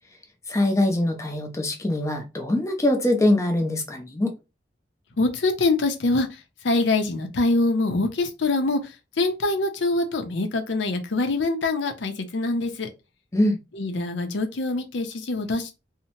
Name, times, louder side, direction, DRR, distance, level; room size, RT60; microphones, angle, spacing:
voice 1, 0.5-4.4 13.3-13.6, left 1 dB, 15° left, 0.5 m, -23 dB
voice 2, 5.2-6.4 6.6-12.9 13.7-15.8, left 2 dB, 85° left, 0.6 m, -24 dB
2.7 x 2.1 x 2.9 m
head